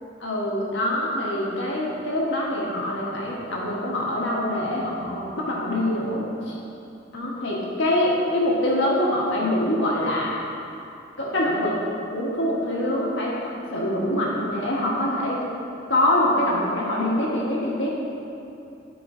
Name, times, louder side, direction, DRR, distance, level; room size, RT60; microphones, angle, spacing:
voice 1, 0.2-6.5 7.1-10.4 11.2-11.8 12.1-15.4 15.9-17.9, left 1 dB, 65° left, -4 dB, 1.5 m, -24 dB
11.0 x 5.0 x 3.7 m, 2.7 s
head